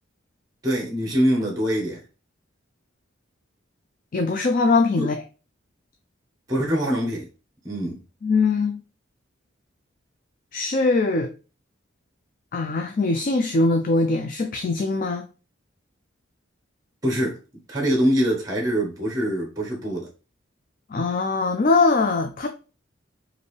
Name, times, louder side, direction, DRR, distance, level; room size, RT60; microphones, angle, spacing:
voice 1, 0.6-2.0 5.0-5.1 6.5-7.3 7.6-8.0 17.0-17.4 17.7-20.1, equal, 20° right, 1.1 m, -23 dB
voice 2, 4.1-5.2 8.2-8.8 10.5-11.3 12.5-15.3 20.9-22.5, left 3 dB, 45° left, 0.4 m, -22 dB
5.2 x 2.6 x 3.2 m
head